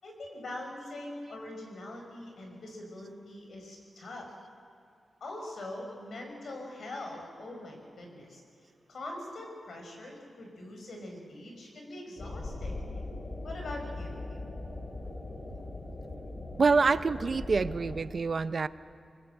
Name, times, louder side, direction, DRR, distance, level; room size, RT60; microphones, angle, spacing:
voice 1, 0.0-4.3 5.2-8.4 8.9-12.8 13.4-14.2, left 1 dB, 60° left, 2 dB, 5.2 m, -42 dB
sound 1, 12.2-18.0, left 2 dB, 35° left, 3.2 m, -40 dB
voice 2, 16.6-18.7, right 4 dB, 40° right, 15 dB, 0.6 m, -26 dB
26.0 x 19.5 x 7.8 m, 2.6 s
wide cardioid pair, 175°, 0 cm